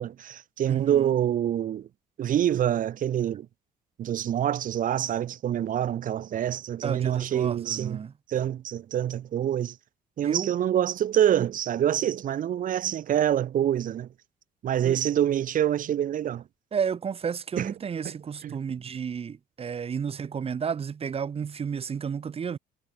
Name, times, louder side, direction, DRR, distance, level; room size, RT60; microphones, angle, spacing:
voice 1, 0.0-1.9 2.2-3.5 4.0-8.0 8.3-9.7 10.2-14.1 14.6-16.4 17.6-17.7 18.0-18.2 18.4-18.6, right 10 dB, 55° right, 1.4 m, -26 dB
voice 2, 0.7-1.1 6.8-8.1 10.2-10.5 14.8-15.0 16.7-22.6, right 7 dB, 35° right, 1.8 m, -32 dB
cardioid pair, 110°, 17 cm